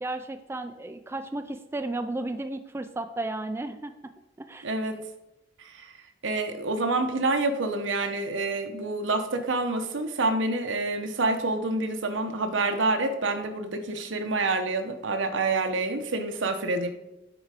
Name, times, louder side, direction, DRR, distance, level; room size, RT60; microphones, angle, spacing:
voice 1, 0.0-3.9 4.4-4.7, right 2 dB, 15° right, 8 dB, 0.3 m, -33 dB
voice 2, 4.6-5.0 5.6-5.9 6.2-16.9, right 2 dB, 80° right, 7 dB, 0.9 m, -27 dB
7.9 x 4.7 x 4.9 m, 0.97 s
head